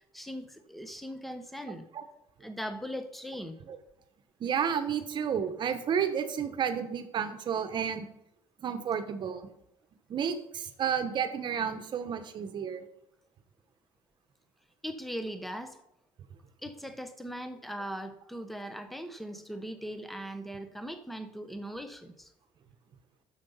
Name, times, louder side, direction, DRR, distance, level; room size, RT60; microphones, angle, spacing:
voice 1, 0.0-1.8 2.4-3.6 14.8-15.8 16.6-22.3, equal, ahead, 9 dB, 0.8 m, -39 dB
voice 2, 4.4-8.1 8.6-9.4 10.1-12.8, right 7 dB, 40° right, 9 dB, 1.1 m, -31 dB
10.5 x 7.0 x 5.6 m, 0.81 s
cardioid pair, 155°, 12 cm